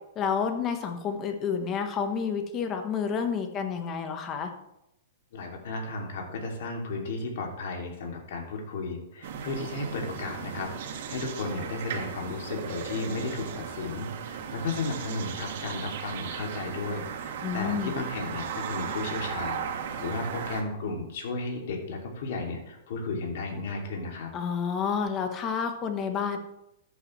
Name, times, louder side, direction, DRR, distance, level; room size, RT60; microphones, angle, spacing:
voice 1, 0.1-4.5 17.4-17.9 24.3-26.4, left 6 dB, 25° left, 6 dB, 1.2 m, -29 dB
voice 2, 5.3-19.6 20.0-24.3, left 3 dB, 65° left, 1 dB, 2.6 m, -34 dB
sound 1, 9.2-20.6, right 7 dB, 60° right, 1.6 m, -36 dB
13.5 x 8.1 x 3.2 m, 0.87 s
hypercardioid pair, 150°, 0 cm